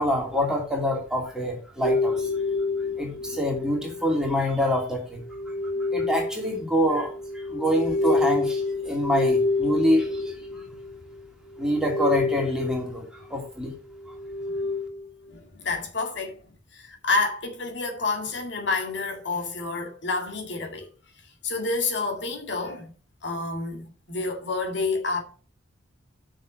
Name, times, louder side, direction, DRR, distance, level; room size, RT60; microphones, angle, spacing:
voice 1, 0.0-2.3 3.0-5.2 5.9-10.3 11.6-13.7, equal, 5° right, 2.7 m, -26 dB
sound 1, 1.8-4.2 5.2-11.2 11.5-13.0 13.9-15.0, left 3 dB, 85° left, 1.9 m, -28 dB
voice 2, 15.3-16.3 16.7-20.9 21.4-22.9 23.2-25.2, left 3 dB, 65° left, 2.2 m, -29 dB
6.9 x 6.5 x 6.3 m
head